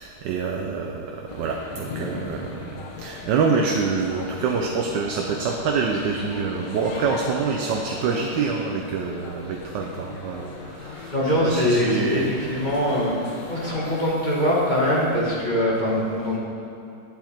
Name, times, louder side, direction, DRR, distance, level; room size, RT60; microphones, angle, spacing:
voice 1, 0.0-10.5 10.8-12.3, right 5 dB, 85° right, 1 dB, 1.3 m, -26 dB
sound 1, 1.3-14.0, left 4 dB, 85° left, 1.5 m, -38 dB
voice 2, 11.1-13.1 13.5-16.4, equal, 30° left, -5 dB, 1.4 m, -22 dB
8.7 x 8.1 x 4.3 m, 2.7 s
omnidirectional pair, 1.9 m